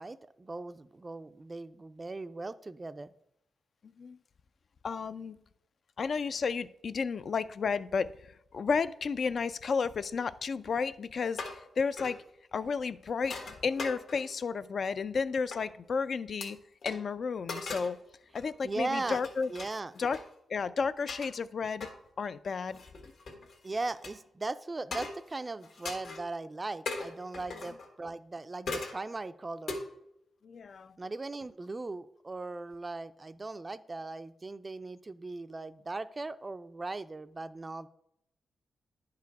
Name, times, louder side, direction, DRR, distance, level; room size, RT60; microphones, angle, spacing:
voice 1, 0.0-3.1 18.6-19.2 19.5-19.9 23.6-29.8 31.0-37.9, right 3 dB, 25° right, 0.4 m, -38 dB
voice 2, 4.8-5.4 6.0-8.1 8.5-12.2 12.5-13.4 13.6-16.6 16.8-18.0 18.3-19.5 20.0-20.2 20.5-21.9 22.2-22.8 30.4-30.9, left 5 dB, 50° left, 0.3 m, -32 dB
sound 1, 11.3-11.7 12.0-12.2 13.2-14.4 15.5-15.6 16.4-16.5 16.8-17.0 17.5-18.0 18.3-18.5 19.0-20.3 21.1-21.3 21.8-22.0 22.7-24.1 24.9-25.3 25.6-26.2 26.9-27.9 28.7-29.0 29.7-29.8, left 3 dB, 65° left, 1.5 m, -39 dB
10.5 x 4.8 x 4.6 m
cardioid pair, 120°, 0 cm